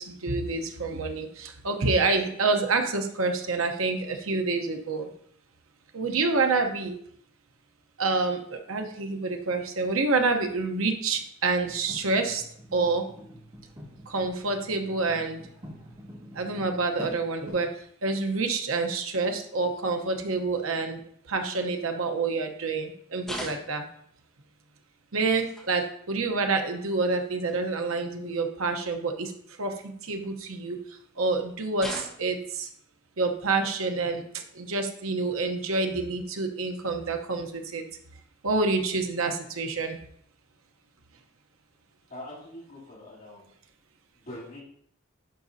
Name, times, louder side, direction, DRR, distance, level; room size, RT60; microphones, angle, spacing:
voice 1, 0.0-5.1 5.9-7.0 8.0-12.4 12.7-13.1 14.1-15.4 16.3-17.7 18.0-21.0 21.3-23.9 25.1-29.3 29.6-30.8 31.2-32.7 33.2-37.9 38.4-40.0, right 3 dB, 75° right, 5 dB, 0.9 m, -27 dB
sound 1, 11.7-17.5, equal, 25° right, 2.7 m, -46 dB
sound 2, 23.2-24.0 25.3-25.9 26.9-27.0 27.5-27.6 29.8-30.5 31.8-32.5 34.2-34.4 36.0-36.1 37.3-37.4 38.5-38.9, equal, ahead, 1.5 m, -40 dB
voice 2, 42.1-43.5 44.1-44.6, left 1 dB, 45° left, -8 dB, 3.3 m, -43 dB
11.5 x 5.0 x 2.7 m, 0.66 s
head